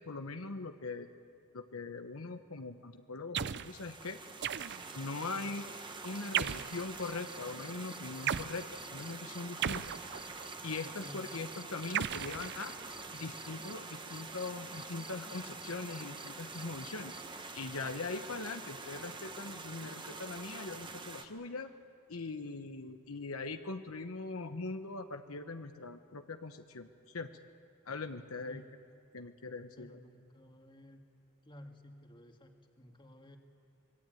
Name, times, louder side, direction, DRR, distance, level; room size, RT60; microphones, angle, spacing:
voice 1, 0.1-1.1 1.5-4.2 4.9-5.7 6.0-10.0 10.6-12.7 13.1-17.1 17.6-21.7 22.1-26.9 27.1-27.3 27.9-28.6 29.1-30.0, left 3 dB, 75° left, 7 dB, 1.1 m, -41 dB
sound 1, 3.3-3.7 4.4-5.0 6.3-6.8 8.3-8.6 9.6-10.5 11.9-13.0, right 9 dB, 55° right, 0.6 m, -36 dB
sound 2, 3.6-21.2, right 3 dB, 20° right, 1.5 m, -46 dB
sound 3, 6.1-13.7 14.1-17.4 19.1-19.2, right 1 dB, 5° right, 0.6 m, -54 dB
voice 2, 29.8-31.0 31.4-33.4, equal, 25° left, 3 dB, 2.0 m, -54 dB
24.5 x 22.5 x 9.2 m, 2.4 s
head